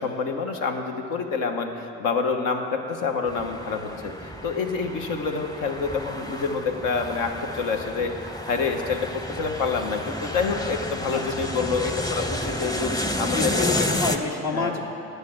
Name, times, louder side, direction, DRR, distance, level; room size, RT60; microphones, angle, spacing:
voice 1, 0.0-12.9 13.2-13.7 14.5-14.7, left 5 dB, 75° left, 4 dB, 1.2 m, -27 dB
sound 1, 3.3-14.2, left 1 dB, 10° left, 0.8 m, -31 dB
voice 2, 11.1-11.5 12.7-12.9 13.3-14.8, left 4 dB, 55° left, 0 dB, 1.7 m, -29 dB
10.0 x 6.7 x 8.6 m, 2.7 s
supercardioid pair, 70°, 33 cm